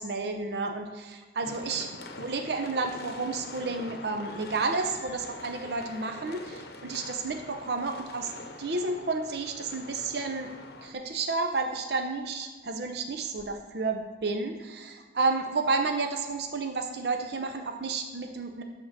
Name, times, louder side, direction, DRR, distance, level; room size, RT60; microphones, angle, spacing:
voice 1, 0.0-1.9 2.2-8.3 8.6-10.5 10.8-18.6, right 3 dB, 60° right, 4 dB, 0.6 m, -31 dB
sound 1, 1.4-10.9, left 2 dB, 60° left, 0.8 m, -44 dB
10.5 x 3.6 x 6.4 m, 1.5 s
head